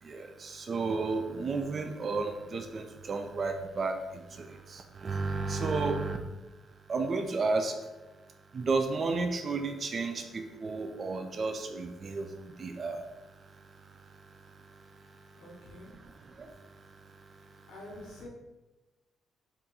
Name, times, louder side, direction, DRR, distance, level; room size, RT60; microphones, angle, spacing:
voice 1, 0.0-6.2 6.9-7.7 8.5-13.0 16.0-16.5, right 3 dB, 45° right, 5 dB, 0.3 m, -32 dB
voice 2, 15.4-15.9 17.7-18.3, left 1 dB, 85° left, -1 dB, 0.9 m, -47 dB
2.8 x 2.3 x 3.8 m, 1.1 s
cardioid pair, 90°, 0 cm